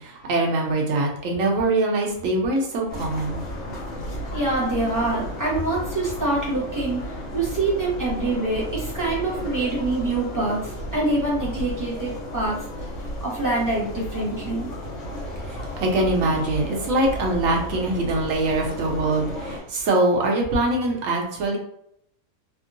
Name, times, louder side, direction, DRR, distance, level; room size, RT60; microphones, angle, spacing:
voice 1, 0.0-3.4 15.5-21.6, right 2 dB, 65° right, 0 dB, 1.1 m, -23 dB
sound 1, 2.9-19.6, equal, 60° left, 1.8 m, -33 dB
voice 2, 4.3-12.6 13.2-14.7, right 2 dB, 15° right, -6 dB, 0.9 m, -25 dB
3.6 x 2.0 x 2.5 m, 0.71 s
omnidirectional pair, 1.6 m